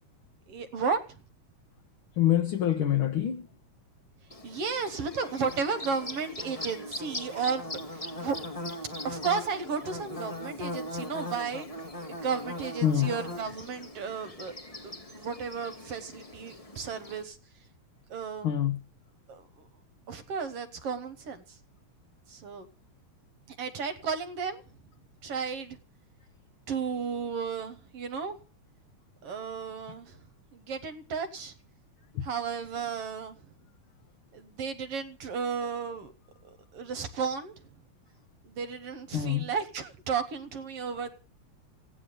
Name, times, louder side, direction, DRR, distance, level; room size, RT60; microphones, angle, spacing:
voice 1, 0.5-1.0 4.4-8.4 9.0-11.7 12.1-14.5 14.8-17.4 18.1-18.5 19.3-19.7 20.1-21.6 22.3-22.7 23.5-24.6 25.2-25.8 26.7-28.4 29.2-30.2 30.5-31.5 32.2-33.4 34.3-36.1 36.7-37.5 38.4-41.1, right 5 dB, 60° right, 2.0 m, -33 dB
voice 2, 2.2-3.5 12.8-13.1 18.4-18.8 39.1-39.5, left 11 dB, 60° left, 1.6 m, -25 dB
Bird / Buzz, 4.3-17.2, left 1 dB, 20° left, 1.0 m, -40 dB
16.5 x 10.0 x 6.7 m
omnidirectional pair, 3.3 m